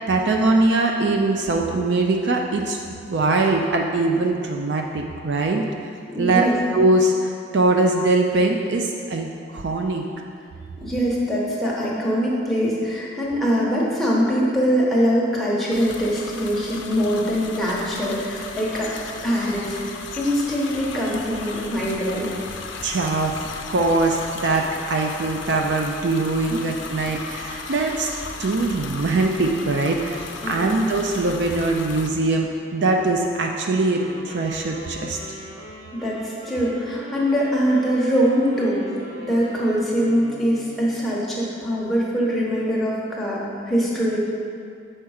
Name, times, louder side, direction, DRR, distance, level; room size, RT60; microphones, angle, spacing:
voice 1, 0.1-2.8 3.1-5.6 6.2-6.5 6.7-9.3 9.5-10.1 22.8-23.3 23.7-28.1 28.4-35.2, right 2 dB, 60° right, 2 dB, 0.4 m, -22 dB
voice 2, 6.0-6.5 10.8-22.3 30.4-30.7 35.9-38.8 39.2-44.2, equal, ahead, -6 dB, 1.1 m, -23 dB
sound 1, 15.7-32.1, left 4 dB, 70° left, 0.5 m, -36 dB
Wind instrument woodwind instrument, 33.8-41.0, equal, 80° right, 1.3 m, -40 dB
5.8 x 4.5 x 6.3 m, 2.5 s
head